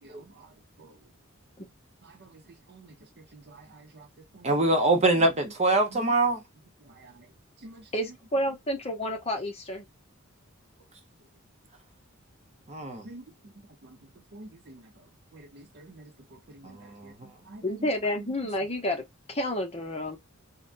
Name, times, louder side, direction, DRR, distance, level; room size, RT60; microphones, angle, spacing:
voice 1, 3.3-4.1 4.3-4.5 7.0-7.1 7.6-7.8 13.0-13.2 14.3-14.8 15.3-16.1 16.5-16.7 17.5-17.6, right 1 dB, 55° right, 0.7 m, -47 dB
voice 2, 4.4-6.4 12.7-13.1 16.6-17.1, right 2 dB, 35° right, 0.9 m, -24 dB
voice 3, 7.9-9.9 17.6-19.0 19.3-20.2, left 1 dB, 30° left, 0.9 m, -30 dB
3.4 x 2.2 x 2.5 m
head